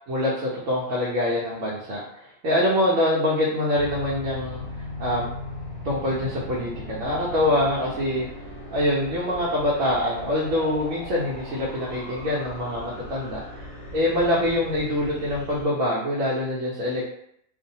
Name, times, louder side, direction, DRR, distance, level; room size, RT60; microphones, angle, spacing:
voice 1, 0.1-4.6 5.0-5.2 5.8-8.3 8.7-13.4 13.9-17.0, left 1 dB, 75° right, -6 dB, 1.0 m, -24 dB
sound 1, 3.7-15.6, left 1 dB, 60° left, 0.9 m, -38 dB
2.6 x 2.2 x 2.7 m, 0.74 s
omnidirectional pair, 1.4 m